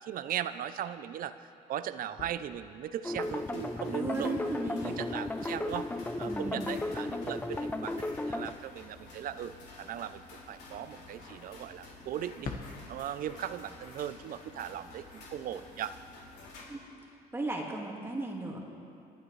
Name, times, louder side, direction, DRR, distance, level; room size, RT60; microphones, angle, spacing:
voice 1, 0.0-1.4 1.7-5.9 6.2-12.5 12.9-16.0, right 10 dB, 55° right, 13 dB, 0.6 m, -38 dB
sound 1, 1.7-4.5 12.2-17.1, left 4 dB, 55° left, 1.3 m, -49 dB
sound 2, 3.0-8.5, left 2 dB, 10° left, 0.5 m, -35 dB
sound 3, 3.2-16.6, left 2 dB, 80° left, 3.6 m, -51 dB
voice 2, 3.9-5.0 6.3-6.6 16.7-16.8 17.3-18.6, right 2 dB, 15° right, -1 dB, 1.9 m, -35 dB
29.0 x 11.5 x 3.2 m, 2.6 s
cardioid pair, 110°, 17 cm